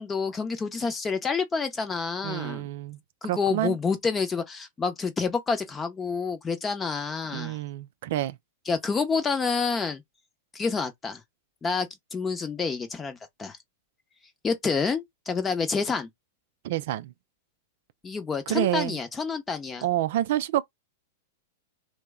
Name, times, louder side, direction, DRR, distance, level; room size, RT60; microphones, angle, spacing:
voice 1, 0.0-2.7 3.2-7.6 8.7-10.0 10.5-11.2 11.6-13.6 14.4-16.1 18.0-19.8, left 5 dB, 20° left, 0.7 m, -28 dB
voice 2, 2.2-3.0 3.3-3.8 7.3-8.4 16.6-17.1 18.5-19.0 19.8-20.6, right 13 dB, 60° right, 0.4 m, -28 dB
2.9 x 2.1 x 3.5 m
hypercardioid pair, 105°, 0 cm